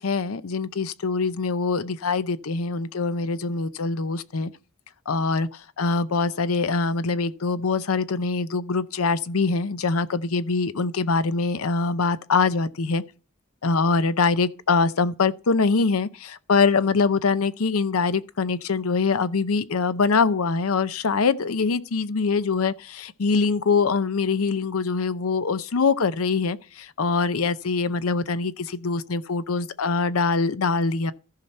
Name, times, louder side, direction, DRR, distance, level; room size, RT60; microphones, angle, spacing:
voice 1, 0.0-4.5 5.1-13.0 13.6-31.1, left 4 dB, 80° left, 0.6 m, -23 dB
14.0 x 5.8 x 4.3 m
head